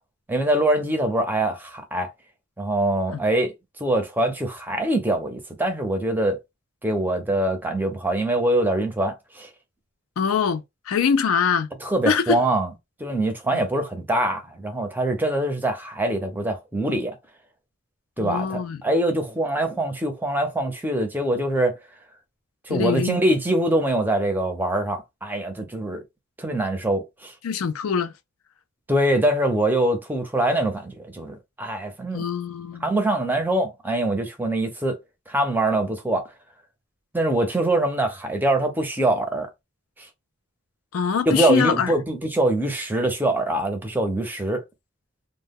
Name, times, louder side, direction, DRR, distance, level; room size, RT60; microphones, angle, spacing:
voice 1, 0.3-2.1 2.6-3.5 3.8-6.4 6.8-9.5 11.8-12.7 13.0-17.2 18.2-21.8 22.7-26.0 26.4-27.3 28.9-32.2 32.8-35.0 35.3-36.3 37.1-39.5 40.0-40.1 41.3-44.6, right 1 dB, 10° right, 0.5 m, -23 dB
voice 2, 10.2-11.7 12.0-12.4 13.5-13.6 18.2-18.8 22.7-23.2 27.4-28.1 32.1-32.9 40.9-41.9, left 6 dB, 75° left, 0.4 m, -23 dB
2.1 x 2.1 x 3.4 m
head